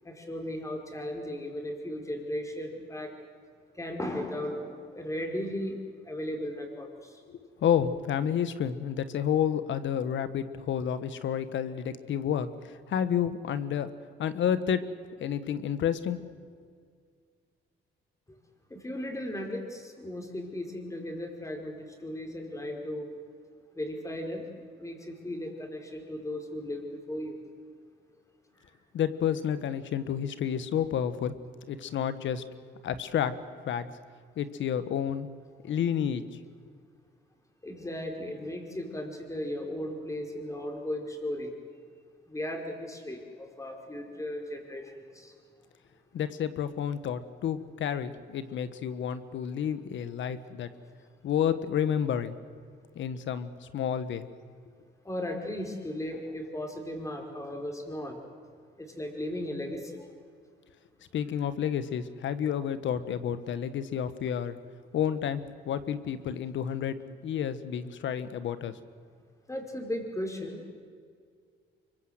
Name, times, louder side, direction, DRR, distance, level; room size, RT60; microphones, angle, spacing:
voice 1, 0.0-3.1 3.7-5.8 6.0-7.2 18.7-23.1 23.7-27.4 28.5-28.7 37.6-41.5 42.3-45.3 55.0-58.2 58.8-60.1 69.5-70.7, left 1 dB, 15° left, 3 dB, 4.9 m, -36 dB
voice 2, 7.3-13.9 14.2-14.8 15.2-16.2 28.9-31.3 31.7-32.4 32.8-33.3 33.7-33.9 34.4-35.3 35.6-36.2 46.1-50.7 51.2-52.4 52.9-54.3 61.1-64.6 64.9-68.8, left 9 dB, 70° left, 13 dB, 1.4 m, -30 dB
25.0 x 22.5 x 8.0 m, 2.1 s
cardioid pair, 90°, 20 cm